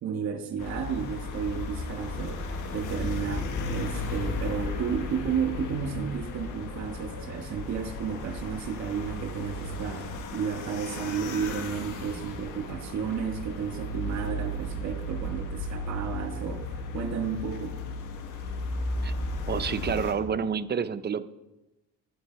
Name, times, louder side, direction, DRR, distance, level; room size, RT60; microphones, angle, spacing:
voice 1, 0.0-16.6 16.9-17.8, right 7 dB, 65° right, 5 dB, 1.6 m, -32 dB
sound 1, 0.6-20.1, left 2 dB, 85° left, 1.5 m, -35 dB
voice 2, 19.5-21.3, right 6 dB, 35° right, 12 dB, 0.6 m, -29 dB
12.0 x 9.3 x 4.6 m, 0.99 s
cardioid pair, 90°, 30 cm